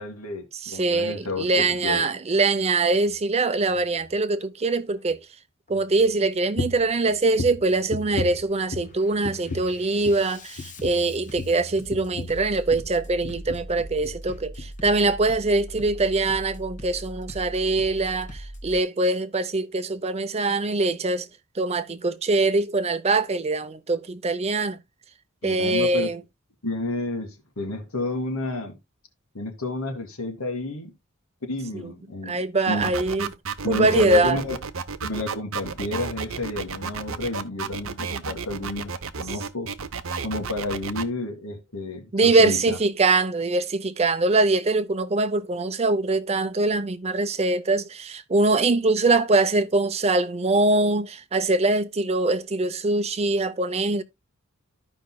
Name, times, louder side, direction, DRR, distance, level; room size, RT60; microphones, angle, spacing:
voice 1, 0.0-2.1 25.4-26.1 26.6-28.8 29.3-30.9 31.4-32.4 32.7-32.9 33.6-34.6 35.0-38.9 39.2-39.7 40.2-42.8, left 2 dB, 85° left, 2.0 m, -30 dB
voice 2, 0.6-5.2 5.7-21.3 21.6-24.8 25.4-26.2 31.7-31.9 32.2-33.3 33.7-34.4 42.1-54.0, right 3 dB, 30° right, 0.6 m, -23 dB
Bass drum, 3.1-3.2 3.7-4.2 5.0-5.2 5.7-6.2 7.0-7.2 7.7-8.2 8.6-18.8, equal, 35° left, 1.2 m, -41 dB
sound 1, 6.6-6.9 7.3-9.0 9.2-9.8 10.0-10.3 10.6-12.9 13.2-13.7 14.0-14.2 14.6-14.7, left 3 dB, 65° left, 0.9 m, -34 dB
sound 2, 32.8-41.0, right 5 dB, 70° right, 0.7 m, -32 dB
14.0 x 5.3 x 2.2 m
head